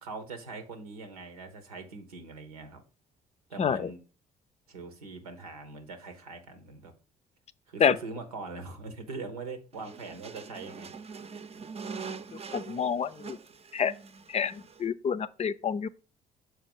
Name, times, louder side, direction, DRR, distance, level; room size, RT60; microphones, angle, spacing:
voice 1, 0.0-2.8 3.5-4.0 4.7-6.9 7.7-10.9, right 3 dB, 90° right, 1.0 m, -42 dB
voice 2, 3.6-3.9 7.8-8.0 12.5-13.4 13.7-13.9 14.3-15.9, left 7 dB, 35° left, 0.5 m, -28 dB
sound 1, 9.7-14.9, right 5 dB, 35° right, 0.7 m, -43 dB
6.5 x 4.5 x 5.3 m
hypercardioid pair, 50°, 18 cm